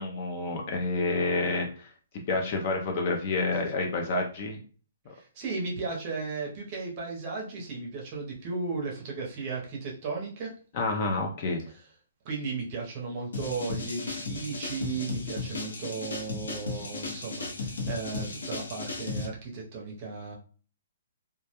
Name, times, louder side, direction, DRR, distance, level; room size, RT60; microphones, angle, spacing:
voice 1, 0.0-1.9 2.3-4.6 10.7-11.6, left 3 dB, 30° left, 1 dB, 0.3 m, -29 dB
voice 2, 5.1-10.5 12.2-20.4, right 4 dB, 25° right, -2 dB, 0.6 m, -35 dB
sound 1, 13.3-19.2, left 3 dB, 90° left, 0.7 m, -35 dB
2.2 x 2.1 x 2.8 m, 0.40 s
hypercardioid pair, 175°, 0 cm